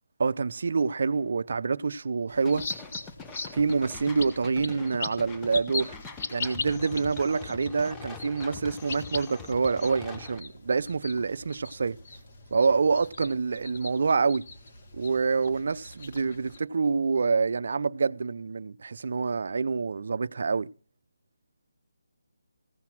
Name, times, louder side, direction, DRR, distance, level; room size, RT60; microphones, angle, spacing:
voice 1, 0.2-2.7 3.5-6.0 6.3-12.0 12.5-14.4 14.9-20.7, right 4 dB, 55° right, 0.5 m, -27 dB
sound 1, 2.3-16.6, left 3 dB, 40° left, 1.4 m, -40 dB
sound 2, 2.4-10.4, left 5 dB, 10° left, 0.6 m, -44 dB
15.5 x 5.7 x 6.0 m
figure-of-eight pair, 160°, 0 cm